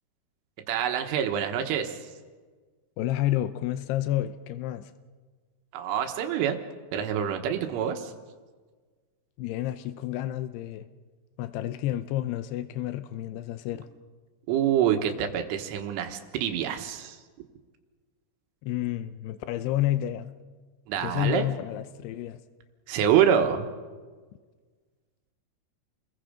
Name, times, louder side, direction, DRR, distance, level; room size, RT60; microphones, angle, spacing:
voice 1, 0.7-2.0 5.7-6.6 6.9-8.1 14.5-17.2 20.9-21.5 22.9-23.7, right 9 dB, 80° right, 5 dB, 3.8 m, -26 dB
voice 2, 3.0-4.9 9.4-10.9 11.4-13.9 18.6-20.3 21.0-22.4, left 13 dB, 90° left, 11 dB, 2.3 m, -30 dB
29.5 x 21.5 x 5.1 m, 1.4 s
omnidirectional pair, 5.8 m